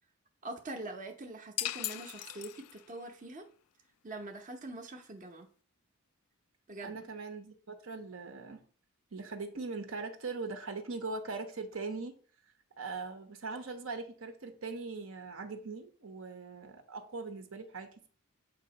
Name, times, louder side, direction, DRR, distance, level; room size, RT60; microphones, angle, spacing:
voice 1, 0.4-3.5 4.0-5.5 6.7-7.0, right 2 dB, 35° right, 2 dB, 0.8 m, -44 dB
sound 1, 1.6-3.0, left 15 dB, 80° left, 0.3 m, -38 dB
voice 2, 6.8-8.6 9.1-12.2 12.8-18.1, right 3 dB, 65° right, 6 dB, 0.9 m, -41 dB
7.5 x 2.8 x 5.2 m, 0.43 s
head